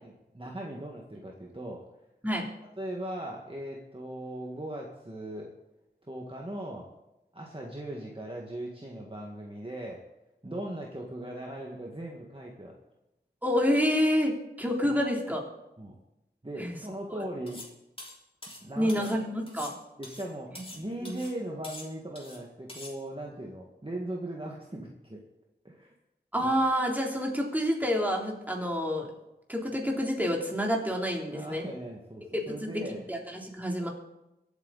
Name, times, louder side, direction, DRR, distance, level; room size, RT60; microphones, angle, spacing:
voice 1, 0.0-1.8 2.8-5.5 6.1-6.9 7.3-10.0 10.4-12.7 14.8-14.9 15.8-16.0 16.4-17.6 18.6-19.1 20.0-25.2 25.6-25.9 26.4-26.5 31.3-33.0, right 1 dB, 30° right, -1 dB, 2.0 m, -39 dB
voice 2, 13.4-15.4 16.6-16.8 18.8-19.7 20.5-20.6 21.0-21.1 26.3-29.1 29.5-31.7 32.3-33.9, equal, 10° right, -1 dB, 3.5 m, -28 dB
sound 1, 17.5-17.7 18.0-19.2 19.5-20.8 21.1-21.4 21.6-22.4 22.7-22.9, left 1 dB, 30° left, 3.2 m, -45 dB
23.0 x 8.7 x 4.2 m, 0.93 s
wide cardioid pair, 45°, 18 cm